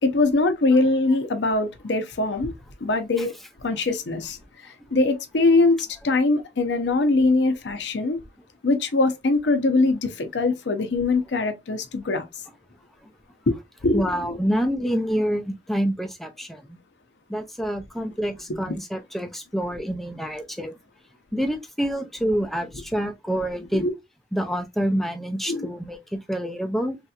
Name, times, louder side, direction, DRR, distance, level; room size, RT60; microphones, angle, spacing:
voice 1, 0.0-2.5 2.8-3.3 3.6-4.4 4.9-5.8 6.0-8.2 8.6-12.2 13.5-13.6 13.8-14.3 18.7-18.8 23.7-23.9 25.5-25.7, left 3 dB, 80° left, 0.7 m, -22 dB
voice 2, 13.9-16.6 17.3-20.7 21.3-23.9 24.3-27.0, equal, ahead, 0.4 m, -27 dB
3.2 x 2.8 x 2.4 m
head